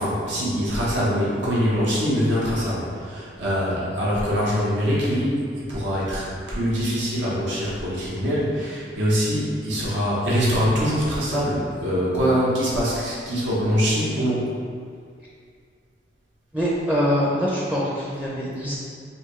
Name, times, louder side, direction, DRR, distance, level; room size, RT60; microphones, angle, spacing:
voice 1, 0.0-5.4 5.7-14.6, equal, 85° right, -7 dB, 1.0 m, -23 dB
voice 2, 16.5-18.8, equal, 5° right, -6 dB, 0.5 m, -24 dB
5.6 x 2.3 x 3.1 m, 2.2 s
head